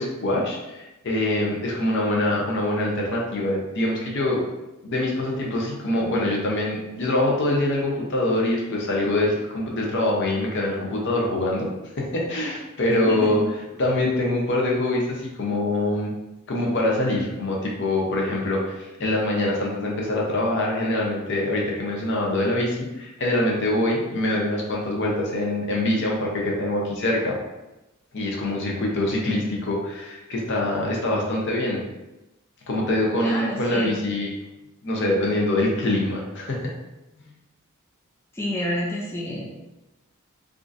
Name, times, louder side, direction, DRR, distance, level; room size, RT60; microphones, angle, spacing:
voice 1, 0.0-4.4 4.8-11.7 12.0-13.4 13.8-16.1 16.5-27.4 28.1-31.8 32.7-34.3 34.8-36.7 37.2-37.3, left 1 dB, 55° left, -2 dB, 0.7 m, -24 dB
voice 2, 12.9-13.4 33.2-34.0 38.3-39.5, left 1 dB, 10° left, -4 dB, 0.4 m, -29 dB
3.5 x 2.6 x 2.5 m, 0.99 s
head